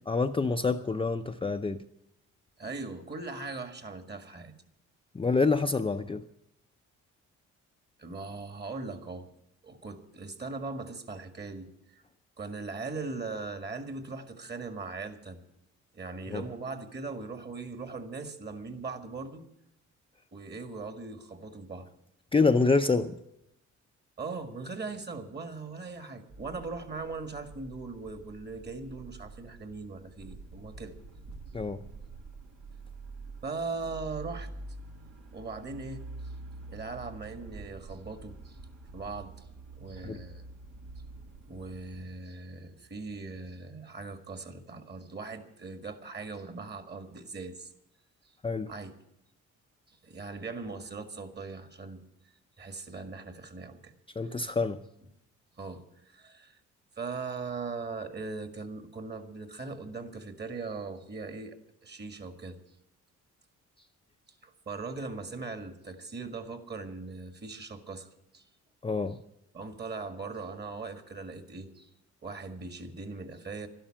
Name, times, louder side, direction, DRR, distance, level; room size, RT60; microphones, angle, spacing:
voice 1, 0.1-1.8 5.1-6.2 16.3-16.4 22.3-23.2 31.5-31.8 40.0-40.2 48.4-48.7 54.2-54.8 68.8-69.2, left 4 dB, 20° left, 6 dB, 0.5 m, -27 dB
voice 2, 2.6-4.5 8.0-9.3 9.6-12.0 12.4-15.4 15.9-19.5 20.3-21.9 24.2-30.9 33.4-34.5 35.3-36.3 36.7-38.6 38.9-39.5 39.7-40.5 41.5-47.7 48.7-48.9 49.9-52.0 52.6-53.9 54.3-54.5 55.6-56.6 57.0-61.6 61.8-62.6 64.4-68.5 69.5-71.9 72.2-73.7, right 4 dB, 35° right, 8 dB, 1.9 m, -40 dB
sound 1, 26.3-42.1, right 3 dB, 75° right, 2.2 m, -47 dB
12.5 x 11.5 x 8.7 m, 0.82 s
cardioid pair, 90°, 30 cm